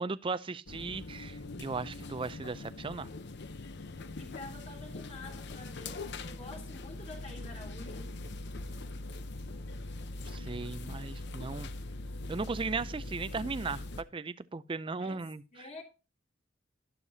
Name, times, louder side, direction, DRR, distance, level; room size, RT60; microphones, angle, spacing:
voice 1, 0.0-3.1 10.3-11.7 12.3-13.8 14.1-15.7, right 4 dB, 25° right, 0.4 m, -37 dB
sound 1, 0.7-14.0, left 2 dB, 60° left, 0.8 m, -42 dB
voice 2, 4.2-8.1 11.5-11.8 15.0-15.2 15.5-15.8, left 2 dB, 35° left, 3.2 m, -48 dB
12.0 x 11.5 x 2.8 m
head